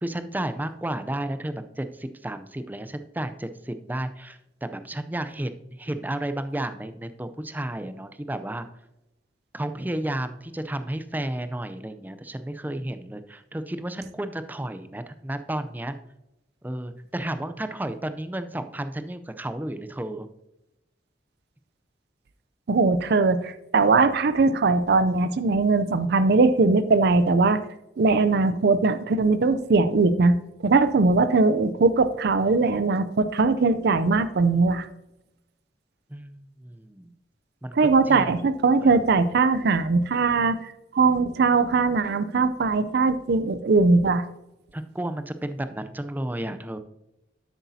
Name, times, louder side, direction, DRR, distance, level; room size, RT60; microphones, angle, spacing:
voice 1, 0.0-8.7 9.5-16.0 16.6-20.3 36.1-37.1 37.6-38.3 38.8-39.0 44.7-46.8, right 1 dB, 10° right, 10 dB, 0.5 m, -32 dB
voice 2, 22.7-27.6 28.0-30.4 30.6-34.9 37.7-44.2, right 3 dB, 60° right, 12 dB, 0.5 m, -20 dB
10.0 x 8.1 x 2.7 m, 0.90 s
head